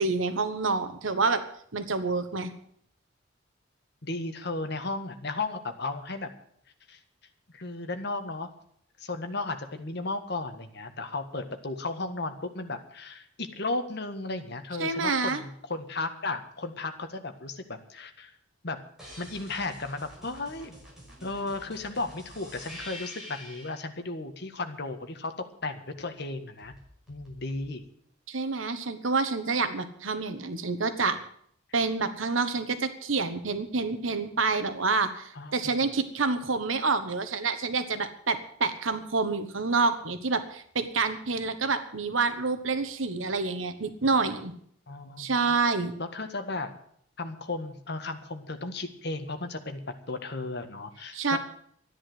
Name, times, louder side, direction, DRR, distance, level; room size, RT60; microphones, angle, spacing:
voice 1, 0.0-1.4 1.7-2.5 14.8-15.4 28.3-31.2 31.7-44.5 45.2-45.9 51.1-51.4, right 4 dB, 90° right, 9 dB, 1.4 m, -28 dB
voice 2, 4.0-6.3 6.9-7.0 7.5-8.5 9.0-18.3 18.6-18.8 19.2-20.8 21.2-25.3 25.6-26.7 27.1-27.8 35.3-35.8 44.9-45.5 46.0-46.8 47.2-51.4, left 3 dB, 60° left, 7 dB, 1.7 m, -35 dB
sound 1, 19.0-23.8 26.6-27.7, equal, 5° right, 5.8 m, -47 dB
13.5 x 10.0 x 7.9 m, 0.63 s
head